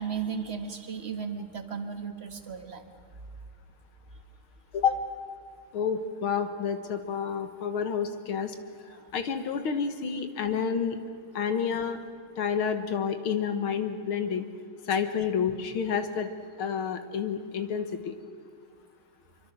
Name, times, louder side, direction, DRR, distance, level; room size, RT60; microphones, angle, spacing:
voice 1, 0.0-2.9 8.9-9.1, right 6 dB, 35° right, 7 dB, 1.6 m, -35 dB
voice 2, 5.7-8.5 9.1-11.0 11.3-12.0 12.4-14.5 14.9-16.3 16.6-18.1, left 7 dB, 85° left, 8 dB, 2.3 m, -29 dB
26.0 x 23.5 x 6.3 m, 2.3 s
omnidirectional pair, 2.3 m